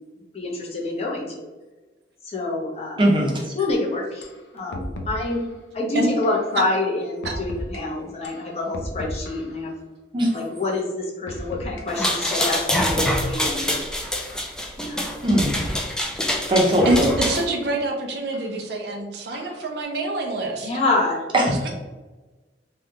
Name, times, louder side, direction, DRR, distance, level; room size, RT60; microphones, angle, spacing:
voice 1, 0.3-1.5 2.3-3.0 3.6-4.3 4.5-5.4 5.7-9.7 10.3-13.7 14.8-15.0 20.6-21.2, left 2 dB, 35° left, -3 dB, 0.8 m, -26 dB
voice 2, 3.0-3.5 10.1-10.3 15.2-15.5 16.5-16.9 21.3-21.7, right 1 dB, 30° right, -2 dB, 0.7 m, -19 dB
sound 1, 3.7-3.8 4.2-4.4 4.7-5.5 6.2-6.5 7.2-7.8 8.2-9.6 10.3-10.5 11.3-11.8 12.3-12.5 12.8-13.6 14.3-14.6 15.3-15.9 16.3-17.6 18.3-18.5 19.3-19.7, equal, 80° left, 0.5 m, -35 dB
sound 2, 11.9-17.4, left 1 dB, 5° left, 0.3 m, -25 dB
voice 3, 16.8-20.7, right 2 dB, 65° right, 1 dB, 0.5 m, -26 dB
3.3 x 2.3 x 2.8 m, 1.2 s
head